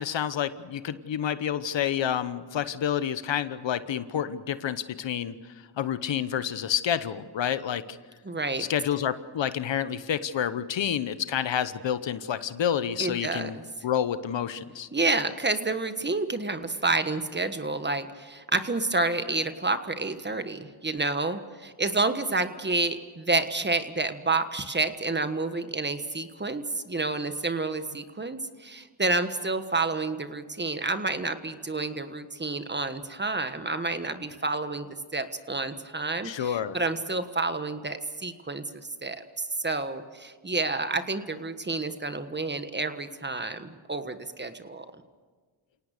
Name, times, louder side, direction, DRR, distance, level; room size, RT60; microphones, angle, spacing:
voice 1, 0.0-5.3 5.8-8.0 8.6-13.5 13.8-14.9 36.2-36.8, left 9 dB, 65° left, 13 dB, 1.1 m, -29 dB
voice 2, 8.2-8.6 13.0-13.5 14.9-34.9 35.1-38.6 39.0-44.8, right 3 dB, 20° right, 10 dB, 1.4 m, -29 dB
29.0 x 18.0 x 6.7 m, 1.5 s
cardioid pair, 85°, 48 cm